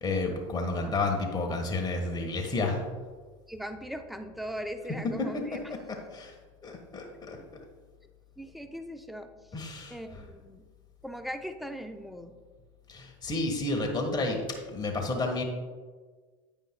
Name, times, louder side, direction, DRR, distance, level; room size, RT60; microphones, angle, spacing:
voice 1, 0.0-2.9 5.2-5.4 5.9-6.3 6.6-7.4 9.5-10.0 12.9-14.4 14.7-15.4, left 2 dB, 25° left, 2 dB, 1.4 m, -31 dB
voice 2, 3.5-5.6 7.3-7.5 8.4-9.3 9.9-10.7 11.0-12.3, equal, ahead, 7 dB, 0.6 m, -39 dB
9.4 x 8.9 x 2.2 m, 1.4 s
hypercardioid pair, 95°, 17 cm